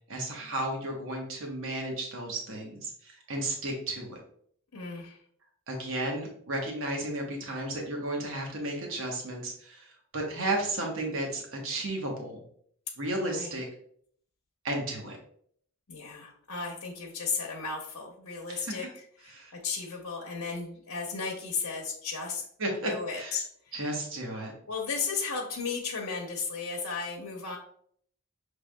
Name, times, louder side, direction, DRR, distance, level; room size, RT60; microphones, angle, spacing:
voice 1, 0.1-4.2 5.7-12.4 13.0-13.7 14.6-15.2 18.5-18.7 19.3-19.6 22.6-23.4 23.7-24.5, right 1 dB, 60° right, 0 dB, 1.0 m, -33 dB
voice 2, 4.7-5.2 13.3-13.6 15.9-18.9 19.2-22.4 22.8-23.5 24.7-27.6, left 5 dB, 90° left, -2 dB, 0.8 m, -34 dB
6.2 x 3.3 x 2.2 m, 0.63 s
head